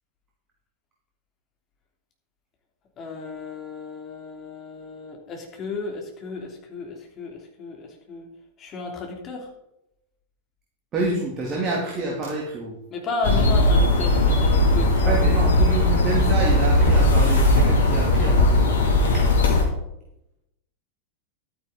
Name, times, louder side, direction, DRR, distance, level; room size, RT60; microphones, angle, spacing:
voice 1, 3.0-8.3 8.6-9.5 12.9-15.2, left 3 dB, 30° left, 1 dB, 3.1 m, -33 dB
voice 2, 10.9-12.7 15.0-18.6 19.1-19.2, right 2 dB, 30° right, -2 dB, 2.7 m, -28 dB
sound 1, 13.2-19.6, left 1 dB, 65° left, 2.6 m, -18 dB
12.0 x 9.9 x 3.9 m, 0.84 s
figure-of-eight pair, 90°, 0 cm